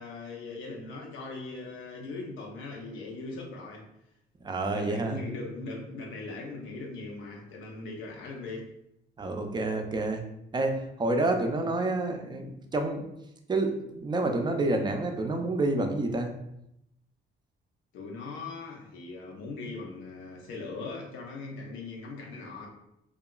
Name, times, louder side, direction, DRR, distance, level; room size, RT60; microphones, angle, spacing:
voice 1, 0.0-3.8 4.7-8.7 17.9-22.7, left 3 dB, 90° left, -1 dB, 0.6 m, -40 dB
voice 2, 4.4-5.2 9.2-10.2 10.5-13.1 13.5-16.3, right 2 dB, 20° right, 4 dB, 0.4 m, -28 dB
2.8 x 2.3 x 2.3 m, 0.81 s
cardioid pair, 90°, 20 cm